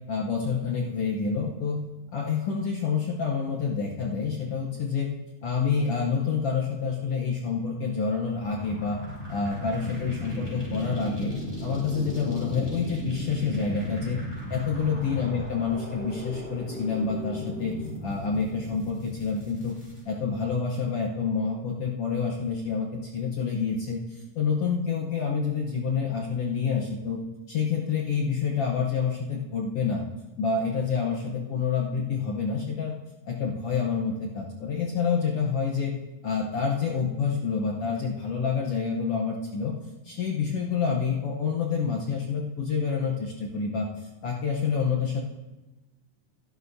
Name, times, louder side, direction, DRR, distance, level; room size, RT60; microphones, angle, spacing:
voice 1, 0.1-1.8 2.1-5.1 5.4-9.0 9.3-11.3 11.6-14.2 14.5-17.7 18.0-19.7 20.0-22.9 23.1-27.2 27.5-30.0 30.4-32.9 33.3-35.9 36.2-39.7 40.0-43.9 44.2-45.2, left 5 dB, 65° left, -3 dB, 1.5 m, -28 dB
sound 1, 8.3-20.0, left 1 dB, 5° left, 4.1 m, -36 dB
13.5 x 12.5 x 2.7 m, 1.1 s
omnidirectional pair, 3.9 m